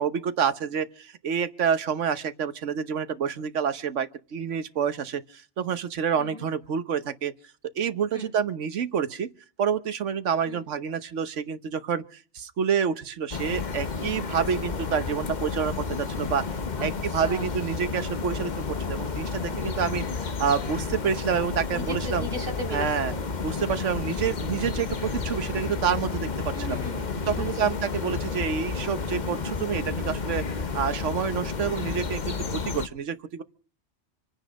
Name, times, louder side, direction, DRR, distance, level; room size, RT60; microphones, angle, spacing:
voice 1, 0.0-7.3 7.8-9.3 9.6-16.5 16.8-22.3 22.7-23.1 23.4-26.8 27.3-30.4 30.7-33.4, right 7 dB, 85° right, 1.3 m, -28 dB
sound 1, 13.3-32.9, left 5 dB, 40° left, 1.1 m, -31 dB
voice 2, 16.8-17.5 21.7-23.2 26.5-27.7 32.2-32.7, equal, 50° right, 3.3 m, -38 dB
26.5 x 9.6 x 5.2 m
omnidirectional pair, 1.2 m